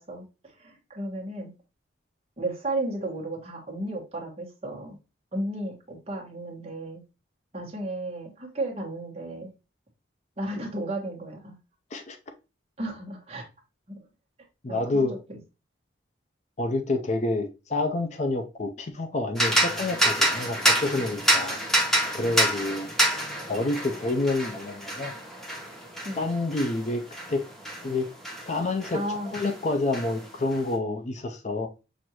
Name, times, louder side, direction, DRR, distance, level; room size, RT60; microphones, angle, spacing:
voice 1, 0.5-1.5 2.4-5.0 5.3-7.0 7.5-9.5 10.4-11.5 12.8-13.4 13.9-14.0 14.7-15.4 22.2-22.3 26.0-26.2 28.9-29.3, right 1 dB, 30° right, 1.2 m, -34 dB
voice 2, 14.6-15.1 16.6-21.6 22.1-22.9 23.5-25.1 26.1-27.0 27.3-27.4 27.8-28.1 28.5-31.7, left 2 dB, 35° left, 0.4 m, -28 dB
sound 1, 19.4-29.0 29.3-30.6, right 1 dB, ahead, 0.8 m, -27 dB
6.1 x 2.5 x 2.9 m
head